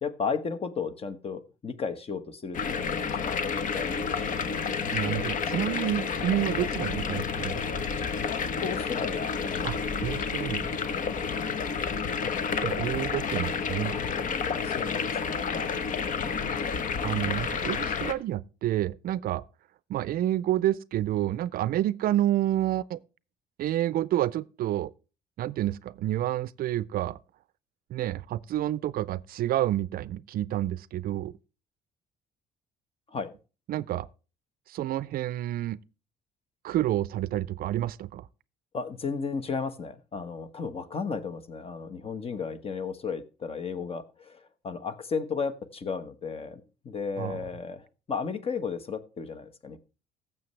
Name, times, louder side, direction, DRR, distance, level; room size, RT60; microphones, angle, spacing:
voice 1, 0.0-3.5 3.7-4.5 8.5-10.3 14.6-15.8 33.1-33.3 38.7-49.8, left 5 dB, 35° left, 1.2 m, -34 dB
sound 1, 2.5-18.1, left 5 dB, 50° left, 1.0 m, -30 dB
voice 2, 4.9-7.9 9.6-10.7 12.6-13.9 17.0-19.4 19.9-23.0 23.6-24.9 25.4-27.2 27.9-31.3 33.7-34.1 34.7-35.8 36.6-38.3 47.2-47.4, right 13 dB, 60° right, 0.4 m, -29 dB
15.5 x 7.2 x 3.2 m
cardioid pair, 110°, 17 cm